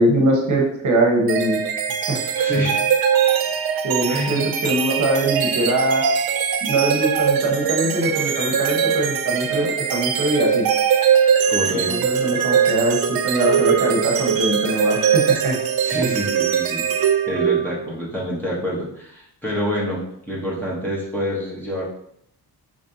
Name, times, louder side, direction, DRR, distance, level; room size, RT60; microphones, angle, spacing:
voice 1, 0.0-1.6 2.1-2.2 3.8-6.0 6.6-10.6 11.6-15.6, right 1 dB, 50° right, -1 dB, 1.0 m, -22 dB
sound 1, 1.3-17.9, right 8 dB, 65° right, 0.5 m, -21 dB
voice 2, 2.4-2.8 4.1-4.3 11.5-11.9 15.8-21.8, equal, 5° left, -6 dB, 1.0 m, -27 dB
5.2 x 3.2 x 2.7 m, 0.72 s
wide cardioid pair, 165°, 39 cm